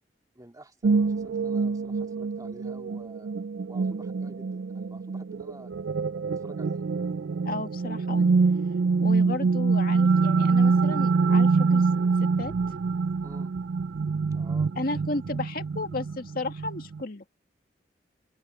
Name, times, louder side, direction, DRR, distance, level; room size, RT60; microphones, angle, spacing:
voice 1, 0.3-3.4 3.6-5.7 6.3-6.8 13.2-13.5 14.3-14.7, right 1 dB, 20° right, 2.4 m, -49 dB
sound 1, 0.8-17.0, right 4 dB, 90° right, 0.4 m, -25 dB
voice 2, 7.4-8.3 9.0-11.9 12.2-12.5 14.8-17.2, left 2 dB, 55° left, 2.0 m, -34 dB
open air
head